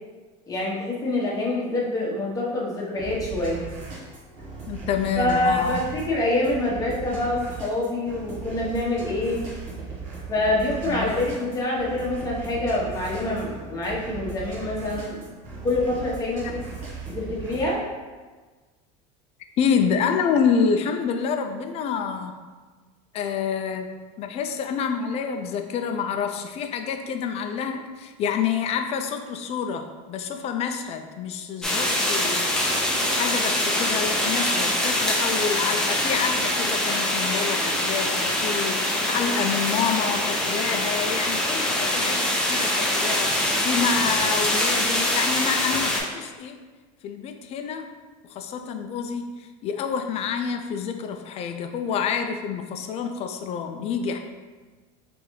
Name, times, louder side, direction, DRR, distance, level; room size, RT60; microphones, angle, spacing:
voice 1, 0.5-3.7 5.2-9.5 10.3-15.3 15.6-16.6 17.1-17.8, left 2 dB, 20° left, -5 dB, 1.0 m, -26 dB
sound 1, 3.0-17.7, right 5 dB, 55° right, 1.2 m, -38 dB
voice 2, 4.7-5.8 10.8-11.3 16.4-16.5 19.6-22.4 23.1-32.8 33.1-46.6 47.0-47.9 48.3-54.2, left 6 dB, 35° left, 6 dB, 0.4 m, -28 dB
sound 2, 31.6-46.0, left 1 dB, 5° left, 0.7 m, -24 dB
3.8 x 3.3 x 3.1 m, 1.4 s
supercardioid pair, 135°, 17 cm